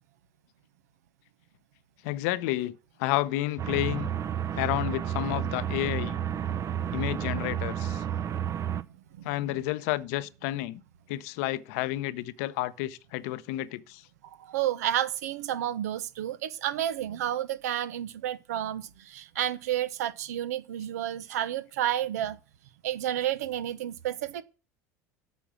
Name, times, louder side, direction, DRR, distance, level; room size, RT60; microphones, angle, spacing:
voice 1, 2.0-4.1 4.5-6.1 6.9-8.0 9.2-10.8 11.1-14.0, left 16 dB, 70° left, 0.7 m, -31 dB
sound 1, 3.6-8.8, right 9 dB, 40° right, 0.6 m, -31 dB
voice 2, 9.1-9.6 14.2-22.4 22.8-24.4, right 11 dB, 80° right, 0.8 m, -31 dB
8.3 x 6.0 x 7.3 m
hypercardioid pair, 80°, 9 cm